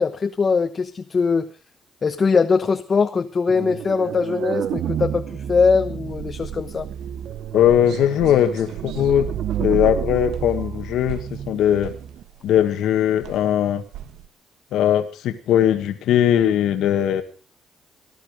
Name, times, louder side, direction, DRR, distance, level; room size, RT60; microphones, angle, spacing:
voice 1, 0.0-1.5 2.0-6.9, left 5 dB, 35° left, 7 dB, 1.0 m, -21 dB
sound 1, 3.5-12.2, right 10 dB, 70° right, 0.8 m, -30 dB
sound 2, 6.1-14.3, right 11 dB, 85° right, 1.6 m, -39 dB
voice 2, 7.5-9.3 9.6-11.9 12.4-13.8 14.7-17.2, left 10 dB, 80° left, 8 dB, 1.7 m, -19 dB
18.5 x 12.0 x 5.1 m, 0.38 s
cardioid pair, 95°, 0 cm